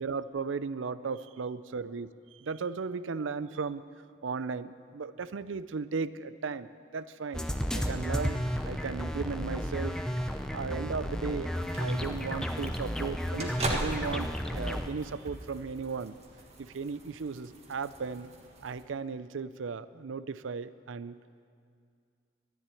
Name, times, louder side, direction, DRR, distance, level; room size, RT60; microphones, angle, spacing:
voice 1, 0.0-3.8 4.2-7.5 7.7-10.0 10.5-16.2 16.6-18.3 18.6-21.2, right 5 dB, 85° right, 15 dB, 0.5 m, -36 dB
sound 1, 7.3-14.9, equal, 5° left, 0.6 m, -33 dB
sound 2, 11.5-18.8, right 2 dB, 35° right, 1.5 m, -41 dB
13.0 x 10.5 x 9.9 m, 2.3 s
head